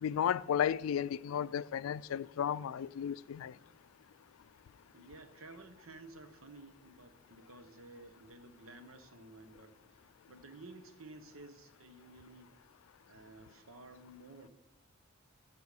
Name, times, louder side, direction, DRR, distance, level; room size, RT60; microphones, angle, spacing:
voice 1, 0.0-3.5, left 9 dB, 85° left, 0.3 m, -33 dB
voice 2, 4.9-9.8 10.3-12.5 13.1-14.5, right 2 dB, 85° right, 1.0 m, -53 dB
12.0 x 8.8 x 4.9 m
head